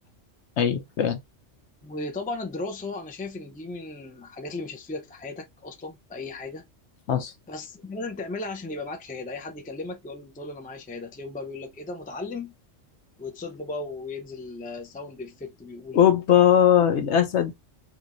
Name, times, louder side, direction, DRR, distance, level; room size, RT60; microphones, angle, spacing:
voice 1, 0.6-1.2 7.1-7.3 15.9-17.5, left 9 dB, 70° left, 1.0 m, -20 dB
voice 2, 1.8-6.6 7.5-12.5 13.2-16.0, left 3 dB, 10° left, 0.4 m, -36 dB
4.5 x 2.7 x 2.5 m
omnidirectional pair, 1.3 m